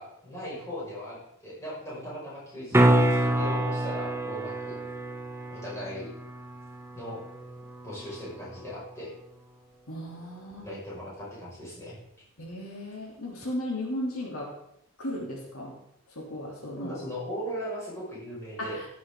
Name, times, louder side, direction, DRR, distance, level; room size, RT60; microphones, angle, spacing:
voice 1, 0.0-4.8 5.5-6.1 6.9-7.2 7.8-9.1 10.6-12.0 16.8-18.8, equal, 15° left, -8 dB, 5.6 m, -38 dB
sound 1, 2.7-8.8 13.4-13.5, right 1 dB, 10° right, 0.8 m, -27 dB
voice 2, 9.9-10.7 12.4-14.5 15.0-15.7 16.1-17.0 18.6-18.9, left 1 dB, 90° left, -2 dB, 3.2 m, -35 dB
15.0 x 8.2 x 3.8 m, 0.77 s
head